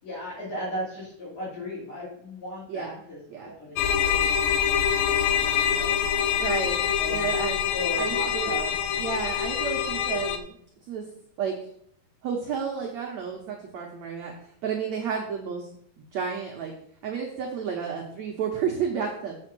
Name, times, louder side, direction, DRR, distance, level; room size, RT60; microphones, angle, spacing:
voice 1, 0.0-6.0 7.0-7.4 7.7-8.8, equal, 40° left, -10 dB, 4.6 m, -37 dB
voice 2, 2.7-3.0 3.3-3.5 6.4-6.8 7.1-7.7 8.0-8.5 9.0-10.5 10.9-11.0 11.4-11.5 12.2-14.3 14.6-15.7 16.0-16.7 17.0-19.4, right 6 dB, 90° right, 1 dB, 1.5 m, -31 dB
sound 1, 3.8-10.4, left 8 dB, 80° left, 2.2 m, -25 dB
7.7 x 5.6 x 6.1 m, 0.65 s
omnidirectional pair, 4.8 m